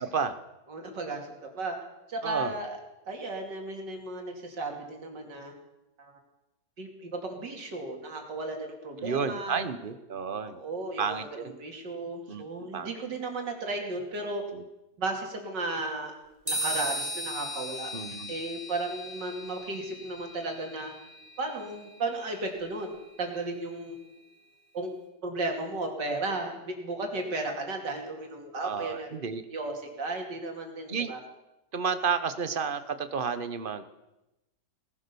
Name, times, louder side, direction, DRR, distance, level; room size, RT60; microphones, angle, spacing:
voice 1, 0.0-0.4 2.2-2.5 9.0-10.6 11.0-11.5 12.3-12.9 14.5-14.6 17.9-18.3 28.6-29.4 30.9-31.1 31.7-33.8, right 6 dB, 40° right, 11 dB, 0.9 m, -31 dB
voice 2, 0.7-1.8 2.1-2.8 3.1-5.5 6.0-6.2 6.8-9.6 10.6-14.4 15.0-16.1 16.5-17.9 18.3-20.9 21.4-24.0 24.7-24.9 25.2-29.2 29.5-31.2, right 2 dB, 80° right, 2 dB, 3.2 m, -34 dB
sound 1, 16.5-24.1, equal, 10° right, 3.1 m, -38 dB
18.5 x 11.5 x 6.9 m, 0.95 s
omnidirectional pair, 1.9 m